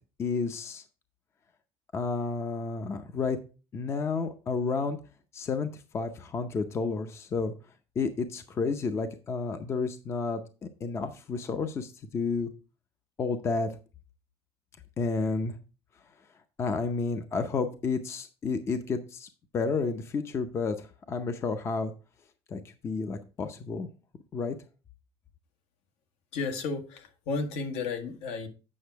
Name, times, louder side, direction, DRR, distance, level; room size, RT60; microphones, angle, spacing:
voice 1, 0.2-0.8 1.9-3.4 3.7-5.0 5.3-7.5 8.0-10.4 10.8-12.5 13.2-13.7 15.0-15.6 16.6-19.3 19.5-21.9 22.5-23.9 24.3-24.5, left 4 dB, 25° left, 0.6 m, -31 dB
voice 2, 26.3-28.5, left 4 dB, 75° left, 1.6 m, -33 dB
8.6 x 6.0 x 4.5 m
cardioid pair, 175°, 11 cm